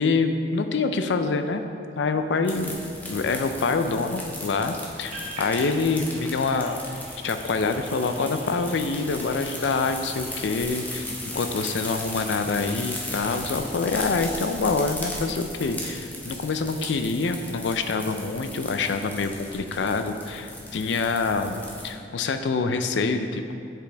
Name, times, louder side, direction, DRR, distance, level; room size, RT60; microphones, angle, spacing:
voice 1, 0.0-1.7 2.0-2.8 3.1-6.8 7.2-23.5, left 4 dB, 75° left, 8 dB, 0.4 m, -26 dB
sound 1, 2.4-21.9, left 1 dB, 10° left, 0.7 m, -37 dB
sound 2, 5.1-11.0, right 1 dB, 40° right, 1.2 m, -43 dB
7.5 x 5.1 x 3.4 m, 2.6 s
head